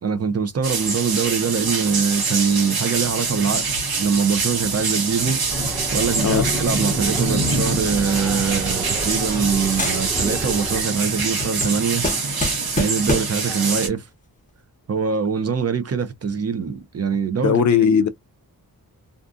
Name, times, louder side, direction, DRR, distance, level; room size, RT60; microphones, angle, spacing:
voice 1, 0.0-3.7 4.0-12.0 12.8-14.1 14.9-17.6, right 6 dB, 40° right, 0.6 m, -23 dB
sound 1, 0.6-13.9, right 4 dB, 75° right, 1.1 m, -24 dB
sound 2, 5.5-10.8, right 1 dB, 5° right, 1.1 m, -31 dB
sound 3, 8.1-9.5 9.8-10.5 10.8-13.5, left 2 dB, 20° left, 0.9 m, -29 dB
voice 2, 17.4-18.1, left 7 dB, 55° left, 0.4 m, -17 dB
2.5 x 2.4 x 2.4 m
cardioid pair, 85°, 37 cm